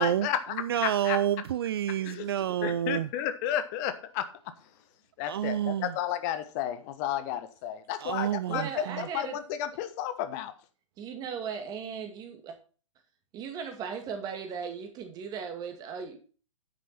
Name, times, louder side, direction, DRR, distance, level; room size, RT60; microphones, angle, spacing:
voice 1, 0.0-0.5 0.8-1.2 2.0-2.3 2.6-4.3 5.2-10.5, left 11 dB, 35° left, 1.2 m, -32 dB
voice 2, 0.5-3.1 5.3-5.9 8.0-9.1, right 11 dB, 50° right, 0.4 m, -29 dB
voice 3, 8.5-9.4 11.0-12.6 13.3-16.2, right 6 dB, 25° right, 2.3 m, -37 dB
9.8 x 8.3 x 4.1 m
figure-of-eight pair, 115°, 16 cm